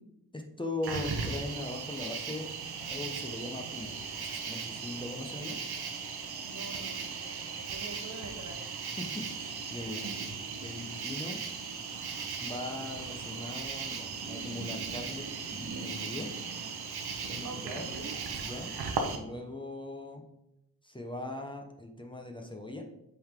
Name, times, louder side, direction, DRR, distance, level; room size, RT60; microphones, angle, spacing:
voice 1, 0.3-2.5 2.9-5.6 9.0-10.0 10.6-11.4 12.4-16.3 17.3-17.9 18.4-18.7 19.2-20.2 20.8-22.8, left 2 dB, 15° left, 2 dB, 0.9 m, -40 dB
Cricket, 0.8-19.2, right 5 dB, 85° right, 0.9 m, -37 dB
voice 2, 6.4-8.6 9.9-10.5 17.4-18.1, right 3 dB, 50° right, 5 dB, 0.9 m, -45 dB
7.5 x 3.9 x 3.6 m, 0.87 s
wide cardioid pair, 85°, 37 cm